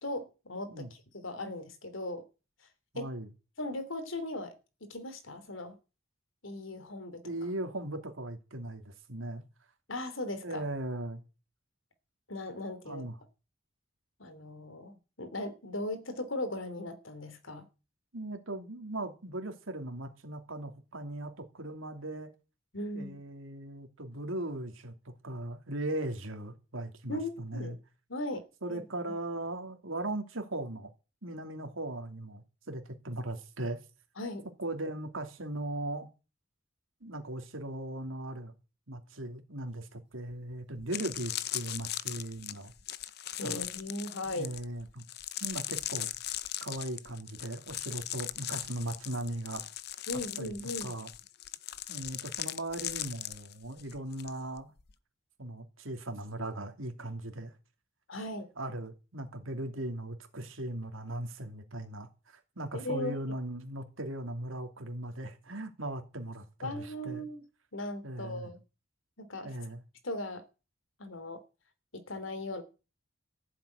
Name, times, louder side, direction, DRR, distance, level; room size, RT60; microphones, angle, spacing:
voice 1, 0.0-2.2 2.9-3.1 3.6-4.5 4.8-5.8 6.4-7.3 9.9-10.6 12.3-13.1 14.2-17.6 22.7-23.2 27.1-27.8 28.1-28.4 28.7-28.8 34.2-34.5 43.4-44.5 50.1-50.9 58.1-58.5 62.7-63.4 66.6-67.4 67.7-68.6 69.2-69.5 70.0-70.4 71.0-71.4 71.9-72.6, left 1 dB, 75° left, 3.1 m, -38 dB
voice 2, 2.9-3.3 7.2-9.4 10.4-11.2 12.8-13.1 18.1-22.3 22.9-27.8 28.6-30.9 31.2-33.8 34.6-36.1 37.0-38.5 38.9-42.7 43.4-43.6 44.2-45.0 45.4-46.1 46.6-49.7 50.4-50.5 50.8-51.1 51.9-54.7 55.4-57.5 58.6-67.2 68.0-68.5 69.4-69.8, right 1 dB, 85° right, 2.9 m, -38 dB
sound 1, 40.3-40.4 40.8-54.3 54.6-54.9, left 13 dB, 50° left, 0.7 m, -39 dB
14.5 x 7.7 x 9.5 m
head